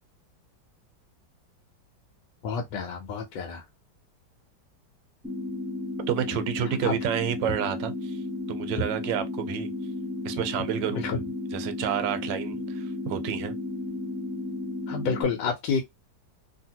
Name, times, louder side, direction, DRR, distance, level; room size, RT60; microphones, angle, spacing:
voice 1, 2.4-3.6 6.8-6.9 11.0-11.2 14.9-15.8, left 5 dB, 80° left, 1.3 m, -29 dB
sound 1, 5.2-15.2, left 2 dB, 5° left, 1.0 m, -33 dB
voice 2, 6.1-8.2 8.5-9.7 10.2-11.1 11.5-13.5, right 10 dB, 80° right, 1.3 m, -30 dB
2.8 x 2.7 x 2.7 m
omnidirectional pair, 2.0 m